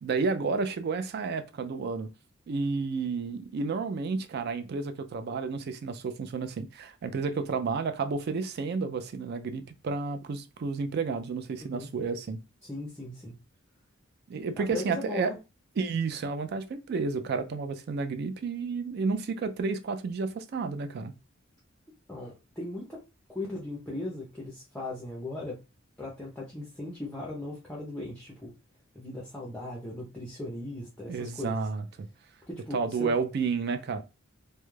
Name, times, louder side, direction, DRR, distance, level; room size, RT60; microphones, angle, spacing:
voice 1, 0.0-2.1 2.5-12.4 14.3-15.3 15.8-21.1 31.1-32.1 32.7-34.0, right 4 dB, 50° right, 0.3 m, -31 dB
voice 2, 12.6-13.3 14.6-15.4 22.1-23.0 23.3-25.6 26.0-28.5 28.9-31.6 32.5-33.1, left 2 dB, 5° left, 0.5 m, -38 dB
2.3 x 2.1 x 3.0 m
head